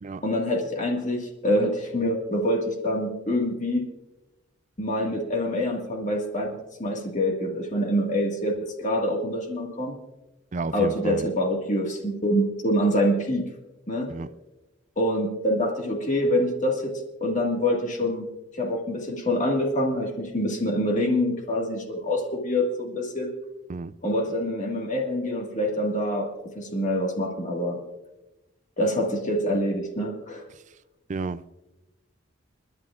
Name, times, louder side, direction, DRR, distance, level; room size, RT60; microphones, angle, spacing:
voice 1, 0.2-3.8 4.8-9.9 10.7-13.5 13.9-14.1 15.0-18.3 18.6-23.3 24.0-27.8 28.8-30.4, left 1 dB, 40° left, 1.8 m, -26 dB
voice 2, 10.5-11.3 14.1-14.3 23.7-23.9 31.1-31.4, right 3 dB, 35° right, 0.4 m, -31 dB
30.0 x 11.0 x 2.4 m
head